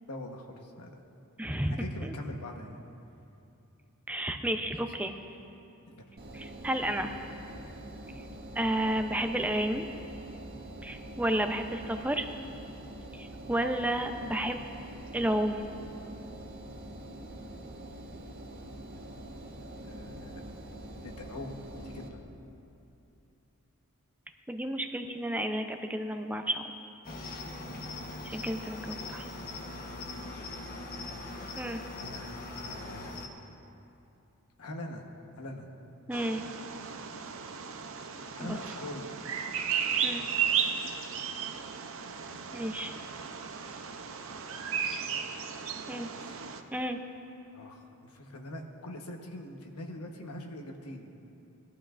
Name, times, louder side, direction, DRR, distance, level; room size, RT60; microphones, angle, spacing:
voice 1, 0.1-1.0 1.8-2.8 5.9-6.1 19.8-20.4 21.0-22.2 27.6-27.8 30.2-30.5 32.0-32.4 32.7-33.2 34.6-35.1 35.4-35.7 36.8-39.1 41.2-41.3 42.3-42.9 46.1-46.4 47.5-51.1, left 1 dB, 80° left, 2 dB, 1.2 m, -44 dB
voice 2, 1.4-1.8 2.0-2.1 4.1-5.1 6.3-7.1 8.6-9.9 10.8-12.3 13.1-14.6 15.1-15.6 24.5-26.6 28.2-29.3 31.6-31.8 36.1-36.4 38.4-38.6 40.0-40.3 42.5-42.9 45.9-46.1 46.7-47.0, right 1 dB, 5° right, 6 dB, 0.6 m, -31 dB
Engine, 6.2-22.1, right 1 dB, 45° right, 1.2 m, -45 dB
Cricket, 27.0-33.3, left 2 dB, 45° left, 1.1 m, -41 dB
Bird vocalization bird call bird song, 36.1-46.6, right 7 dB, 65° right, 0.7 m, -34 dB
20.0 x 12.0 x 2.5 m, 2.7 s
head